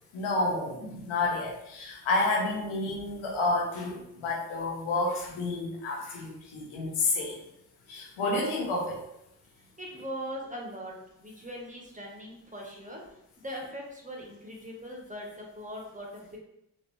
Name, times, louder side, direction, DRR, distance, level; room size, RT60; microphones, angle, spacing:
voice 1, 0.1-7.4 7.9-9.0, left 2 dB, 75° left, -2 dB, 1.1 m, -30 dB
voice 2, 9.6-13.0 13.4-16.4, equal, 15° right, -1 dB, 1.2 m, -40 dB
4.0 x 2.7 x 3.2 m, 0.80 s
supercardioid pair, 45°, 48 cm